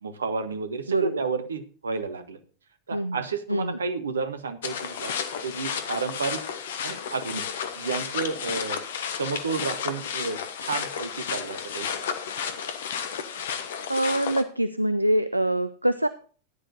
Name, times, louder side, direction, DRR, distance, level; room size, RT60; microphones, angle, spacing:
voice 1, 0.0-2.4 2.9-5.1 5.4-6.4 6.8-7.4 7.7-8.8 9.1-11.9, right 4 dB, 70° right, 10 dB, 1.2 m, -31 dB
voice 2, 0.9-1.2 2.9-3.2 3.5-3.8 13.9-16.1, right 1 dB, 85° right, 13 dB, 0.4 m, -24 dB
sound 1, 4.6-14.4, left 7 dB, 60° left, 1.1 m, -32 dB
14.5 x 10.0 x 2.7 m, 0.40 s
figure-of-eight pair, 90°, 0 cm